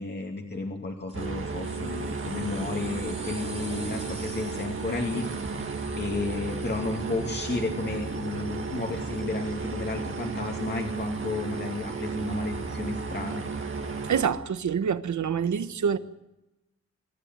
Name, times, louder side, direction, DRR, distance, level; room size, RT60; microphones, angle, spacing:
voice 1, 0.0-13.4, left 3 dB, 35° left, 2.6 m, -33 dB
sound 1, 1.1-14.3, right 2 dB, 25° right, 3.1 m, -48 dB
sound 2, 1.1-14.2, right 4 dB, 45° right, 2.2 m, -34 dB
voice 2, 14.1-16.0, right 7 dB, 80° right, 1.4 m, -26 dB
26.5 x 13.5 x 9.2 m
wide cardioid pair, 155°, 29 cm